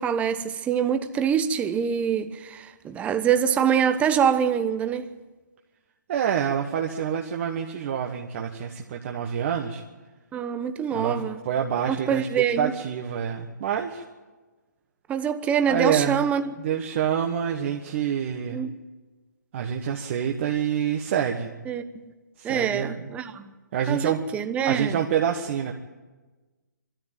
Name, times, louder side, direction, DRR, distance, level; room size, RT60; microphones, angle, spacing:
voice 1, 0.0-5.1 10.3-11.4 11.9-12.7 15.1-16.4 18.5-18.7 21.7-22.0 22.4-23.5 23.9-25.0, right 8 dB, 15° right, 1.0 m, -25 dB
voice 2, 6.1-9.8 10.9-14.0 15.7-16.3 16.6-18.6 19.5-21.5 22.4-23.0 23.7-24.2 24.6-25.7, right 8 dB, 45° right, 1.5 m, -27 dB
23.5 x 13.5 x 9.0 m
hypercardioid pair, 145°, 10 cm